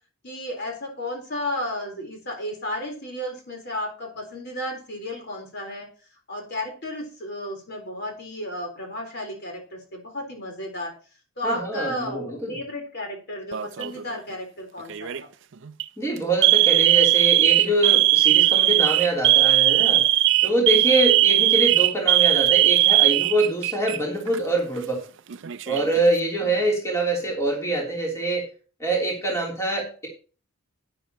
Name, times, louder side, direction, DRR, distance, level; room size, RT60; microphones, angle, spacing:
voice 1, 0.2-5.9 6.3-10.9 11.4-15.3 26.4-26.5, left 1 dB, 45° left, 2 dB, 3.9 m, -33 dB
voice 2, 11.4-12.6 16.0-20.0 20.4-25.0 25.7-28.5 28.8-30.1, right 2 dB, 15° left, -2 dB, 3.2 m, -24 dB
Alarm, 13.5-14.0 14.9-15.2 15.7-15.8 16.4-24.0 24.3-24.4 25.3-26.0, right 15 dB, 55° right, 0.4 m, -18 dB
12.5 x 10.5 x 2.9 m, 0.37 s
head